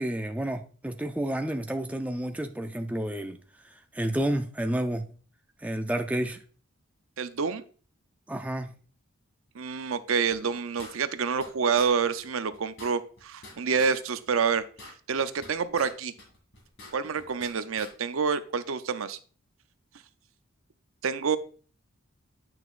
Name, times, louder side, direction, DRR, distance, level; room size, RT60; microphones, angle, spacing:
voice 1, 0.0-3.4 3.6-5.0 5.6-6.4 8.3-8.7, right 1 dB, 5° right, 0.3 m, -30 dB
voice 2, 7.2-7.6 9.5-16.1 16.9-19.2 21.0-21.4, right 6 dB, 70° right, 0.5 m, -28 dB
sound 1, 10.3-11.5 11.8-11.9 12.2-12.3 12.5-14.0 14.3-15.9 16.2-17.5 17.8-17.9, left 2 dB, 55° left, 2.1 m, -47 dB
9.0 x 5.9 x 2.4 m
head